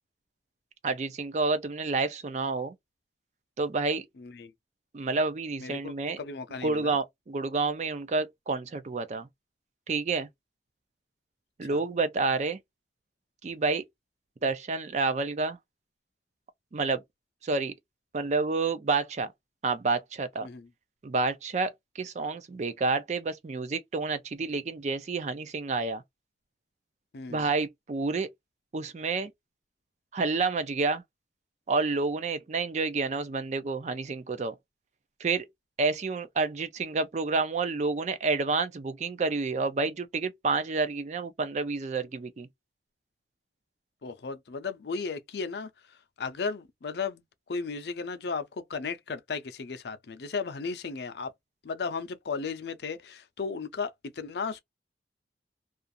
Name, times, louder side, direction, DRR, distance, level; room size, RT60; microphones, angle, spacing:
voice 1, 0.8-2.7 3.6-4.0 4.9-6.2 6.6-9.3 9.9-10.3 11.6-12.6 13.4-13.8 14.4-15.6 16.7-17.0 17.4-17.7 18.1-19.3 19.6-20.5 21.0-26.0 27.3-28.3 28.7-29.3 30.1-31.0 31.7-34.5 35.2-35.5 35.8-42.5, right 3 dB, 40° right, 0.4 m, -29 dB
voice 2, 4.2-4.5 5.6-7.0 11.7-11.8 20.4-20.7 27.1-27.5 44.0-47.2 47.5-51.3 51.6-54.6, left 5 dB, 70° left, 0.5 m, -35 dB
2.4 x 2.3 x 2.6 m
head